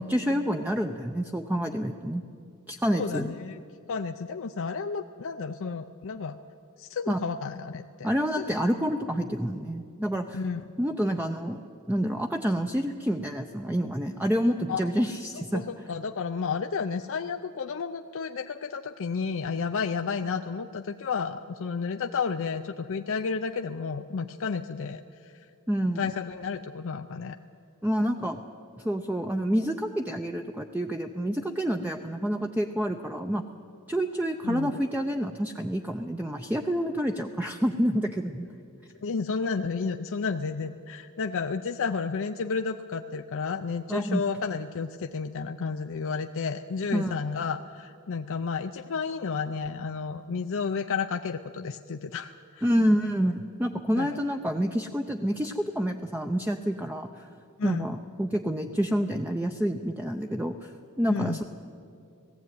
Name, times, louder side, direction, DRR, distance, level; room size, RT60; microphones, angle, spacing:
voice 1, 0.0-2.2 2.7-3.3 7.1-7.2 8.0-10.4 10.8-11.6 11.9-15.6 25.7-26.0 27.8-28.4 28.8-33.4 33.9-38.5 43.9-44.2 46.9-47.2 52.6-57.3 57.6-60.7 61.0-61.5, equal, 10° right, 4 dB, 0.6 m, -28 dB
voice 2, 2.9-3.6 3.9-6.4 6.8-8.1 8.4-8.5 10.3-10.6 14.7-14.8 15.5-25.5 26.0-27.4 34.4-34.7 39.0-52.7 54.0-54.2 57.6-57.9 61.1-61.4, left 5 dB, 60° left, 6 dB, 0.5 m, -32 dB
18.5 x 15.0 x 9.4 m, 2.4 s
head